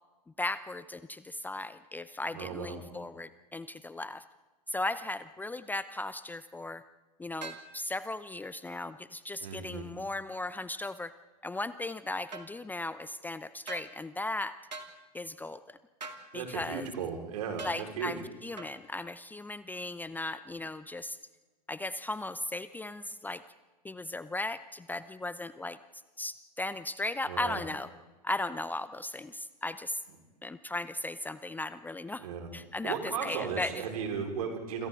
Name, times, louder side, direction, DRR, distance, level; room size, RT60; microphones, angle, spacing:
voice 1, 0.4-4.2 4.7-6.8 7.2-11.1 11.4-14.5 15.1-15.8 16.3-16.9 17.6-21.2 21.7-23.4 23.8-25.8 26.2-27.9 28.2-30.0 30.4-32.3 32.5-33.7, left 2 dB, 10° left, 14 dB, 0.6 m, -37 dB
voice 2, 2.3-2.8 9.4-9.8 16.3-18.1 27.3-27.6 32.2-32.5 32.8-34.9, right 6 dB, 60° right, 3 dB, 4.8 m, -36 dB
sound 1, 7.4-7.7 12.3-12.5 13.7-13.9 14.7-14.9 16.0-16.3 17.6-17.8 18.6-18.7, right 4 dB, 85° right, 2.3 m, -42 dB
28.0 x 26.5 x 3.8 m, 1.3 s
figure-of-eight pair, 95°, 21 cm